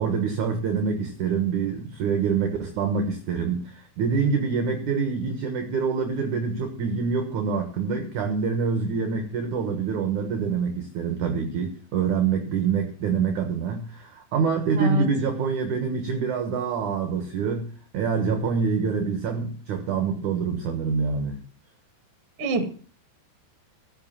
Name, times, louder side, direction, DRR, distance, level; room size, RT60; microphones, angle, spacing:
voice 1, 0.0-17.7 17.9-21.4, right 5 dB, 60° right, 6 dB, 2.2 m, -26 dB
voice 2, 14.8-15.1 22.4-22.6, right 3 dB, 40° right, 7 dB, 2.4 m, -25 dB
14.5 x 6.8 x 7.3 m, 0.41 s
omnidirectional pair, 5.1 m